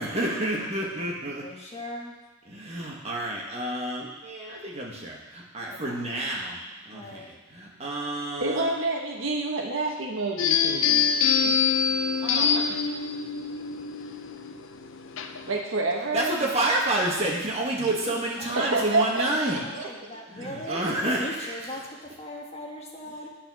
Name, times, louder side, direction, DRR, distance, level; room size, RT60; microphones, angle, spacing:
voice 1, 0.0-1.5 2.5-6.6 6.8-8.7 12.2-12.8 16.1-19.6 20.3-21.6, right 1 dB, 30° right, -3 dB, 1.6 m, -29 dB
voice 2, 1.4-2.1 5.7-6.1 6.9-7.4 18.4-18.6 19.2-20.8 21.2-23.3, left 1 dB, 30° left, -2 dB, 1.3 m, -40 dB
voice 3, 8.4-11.1 11.4-11.7 15.5-16.4 17.8-17.9 18.5-20.2 20.7-20.8, right 3 dB, 70° right, 1 dB, 1.1 m, -28 dB
sound 1, 10.4-15.6, left 6 dB, 60° left, 0.5 m, -25 dB
10.0 x 4.5 x 6.2 m, 1.2 s
head